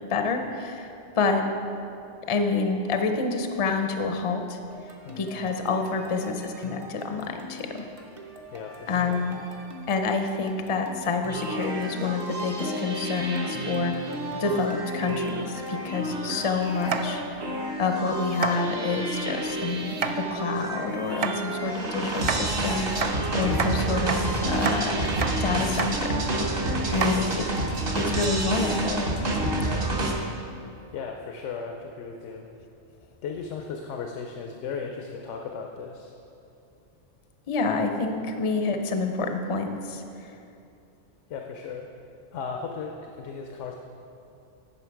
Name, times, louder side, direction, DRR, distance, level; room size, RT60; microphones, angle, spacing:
voice 1, 0.1-1.5 2.3-4.6 5.2-7.8 8.9-9.4 9.9-14.0 14.3-17.2 17.8-25.0 25.4-26.2 26.9-27.4 27.9-29.0 29.8-30.0 37.5-40.3, left 4 dB, 40° left, 5 dB, 0.4 m, -28 dB
sound 1, 4.7-17.0, right 1 dB, 35° right, 0.6 m, -46 dB
voice 2, 8.5-9.2 16.0-16.3 27.0-27.3 30.9-32.5 33.2-36.1 41.3-41.9 42.3-43.7, left 5 dB, 90° left, 2 dB, 1.0 m, -36 dB
sound 2, 11.3-30.1, right 1 dB, 55° right, 1.2 m, -29 dB
sound 3, 16.8-17.4 17.8-18.0 18.3-18.6 19.8-20.1 21.1-21.4 22.1-22.4 22.9-23.7 24.1-24.2 24.5-24.8 25.1-25.3 25.6-25.9 26.3-26.4 26.9-28.3, right 5 dB, 75° right, 0.3 m, -30 dB
10.0 x 5.7 x 4.6 m, 2.7 s
omnidirectional pair, 1.2 m